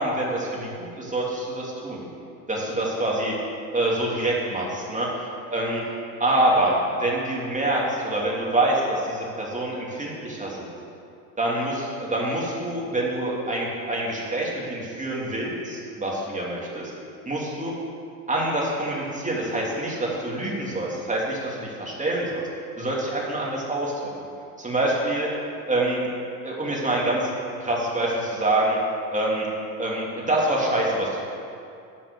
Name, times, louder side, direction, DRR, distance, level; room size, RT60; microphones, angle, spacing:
voice 1, 0.0-2.0 2.5-3.4 3.7-5.1 5.5-5.8 6.2-10.7 11.4-16.9 17.3-17.7 18.3-22.4 22.8-23.9 24.6-25.3 25.7-26.0 26.4-27.3 27.6-28.8 29.1-29.5 29.8-31.2, right 1 dB, 15° right, -4 dB, 3.1 m, -26 dB
10.5 x 5.8 x 8.6 m, 2.5 s
hypercardioid pair, 75°, 50 cm